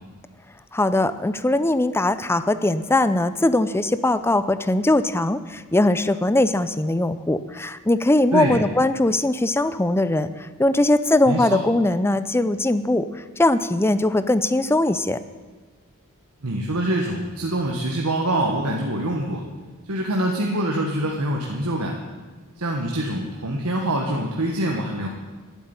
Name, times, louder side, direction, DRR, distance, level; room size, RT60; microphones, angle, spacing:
voice 1, 0.7-15.2, left 2 dB, 10° left, 13 dB, 0.5 m, -21 dB
voice 2, 11.3-11.6 16.4-19.4 19.9-22.0 22.6-25.1, right 1 dB, 75° right, 0 dB, 1.4 m, -25 dB
11.5 x 8.3 x 9.5 m, 1.4 s
head